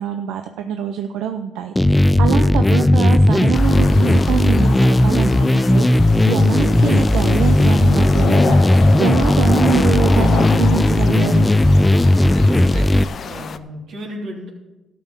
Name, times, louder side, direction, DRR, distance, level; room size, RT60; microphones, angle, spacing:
voice 1, 0.0-11.5, right 9 dB, 90° right, 6 dB, 0.6 m, -25 dB
sound 1, 1.8-13.0, left 1 dB, 10° left, 0.4 m, -15 dB
sound 2, 3.5-13.6, left 6 dB, 50° left, 0.6 m, -28 dB
voice 2, 12.1-12.9 13.2-14.5, equal, 65° right, -1 dB, 3.2 m, -34 dB
13.0 x 6.0 x 7.4 m, 1.0 s
cardioid pair, 90°, 0 cm